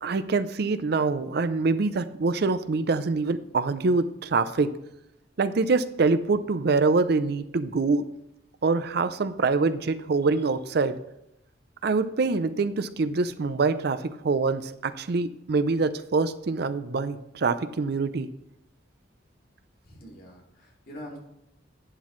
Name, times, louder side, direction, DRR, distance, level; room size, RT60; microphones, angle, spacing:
voice 1, 0.0-4.7 5.4-8.1 8.6-11.0 11.8-18.3, right 4 dB, 60° right, 13 dB, 0.5 m, -25 dB
voice 2, 19.8-21.2, equal, 55° left, -1 dB, 2.6 m, -44 dB
11.0 x 9.1 x 3.1 m, 0.84 s
head